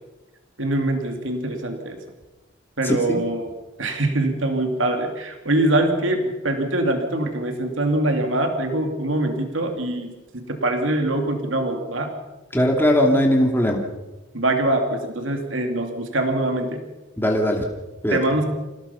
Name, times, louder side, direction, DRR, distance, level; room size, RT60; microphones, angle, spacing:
voice 1, 0.6-2.0 2.8-3.5 3.8-12.2 14.3-16.8 18.1-18.4, right 1 dB, 75° right, 4 dB, 2.8 m, -23 dB
voice 2, 2.8-3.2 12.5-13.8 17.2-17.6 18.0-18.2, equal, 10° left, 1 dB, 2.9 m, -19 dB
27.5 x 17.0 x 5.8 m, 1.1 s
head